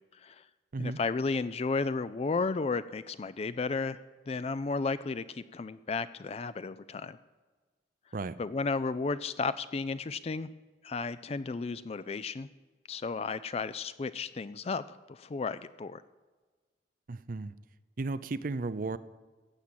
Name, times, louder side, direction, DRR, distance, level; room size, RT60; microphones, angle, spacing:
voice 1, 0.8-4.0 4.3-7.2 8.4-10.5 10.8-12.5 12.9-16.0, left 4 dB, 35° left, 15 dB, 0.4 m, -33 dB
voice 2, 17.1-17.5 18.0-19.0, right 3 dB, 50° right, 16 dB, 0.5 m, -34 dB
15.5 x 7.3 x 8.4 m, 1.3 s
head